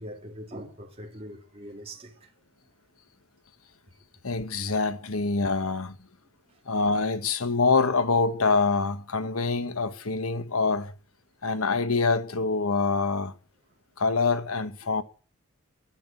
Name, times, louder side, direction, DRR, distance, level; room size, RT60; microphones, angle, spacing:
voice 1, 0.0-2.3 9.2-9.3, equal, 25° right, 2.5 m, -42 dB
voice 2, 4.2-6.0 6.7-10.9 11.4-13.3 14.0-15.0, left 4 dB, 75° left, 1.3 m, -25 dB
11.0 x 10.0 x 8.3 m
head